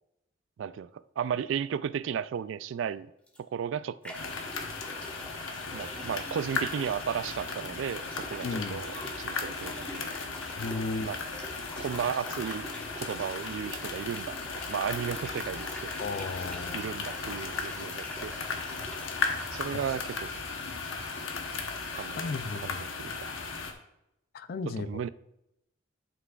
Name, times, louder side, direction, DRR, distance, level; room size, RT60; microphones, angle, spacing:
voice 1, 0.6-0.9 1.2-3.1 3.5-4.1 5.7-10.1 11.0-11.2 11.8-12.6 13.0-14.4 14.7-16.0 16.7-18.4 19.5-20.3 22.0-23.3 24.8-25.1, right 8 dB, 70° right, 0.3 m, -34 dB
sound 1, 3.3-3.4 4.0-20.0, equal, 5° left, 1.3 m, -45 dB
sound 2, 4.1-23.7, left 4 dB, 80° left, 1.0 m, -36 dB
sound 3, 4.3-22.3, right 2 dB, 15° right, 2.6 m, -54 dB
voice 2, 8.4-8.8 10.6-11.1 16.0-16.8 22.2-22.9 24.3-25.0, left 3 dB, 50° left, 0.4 m, -34 dB
11.0 x 6.0 x 2.4 m
head